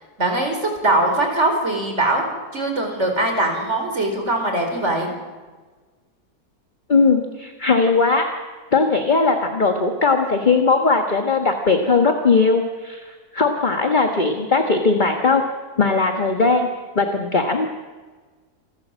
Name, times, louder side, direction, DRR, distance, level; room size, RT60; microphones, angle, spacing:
voice 1, 0.2-2.2 2.5-5.1, right 2 dB, 45° right, 4 dB, 4.6 m, -21 dB
voice 2, 6.9-8.3 8.7-15.4 15.8-16.7 16.9-17.7, left 4 dB, 30° left, 4 dB, 1.6 m, -19 dB
28.0 x 14.5 x 7.6 m, 1.4 s
omnidirectional pair, 1.7 m